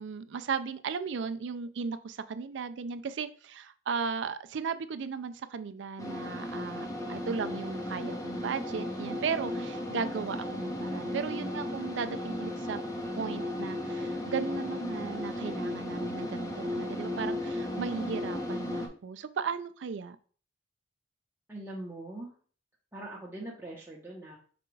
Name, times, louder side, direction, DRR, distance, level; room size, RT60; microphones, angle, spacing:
voice 1, 0.0-12.8 13.1-20.2, right 6 dB, 70° right, 11 dB, 0.4 m, -36 dB
sound 1, 6.0-18.9, left 1 dB, 20° left, 0.6 m, -35 dB
voice 2, 21.5-22.4 22.9-24.4, right 1 dB, 10° right, -4 dB, 0.8 m, -42 dB
5.0 x 2.3 x 4.5 m, 0.43 s
head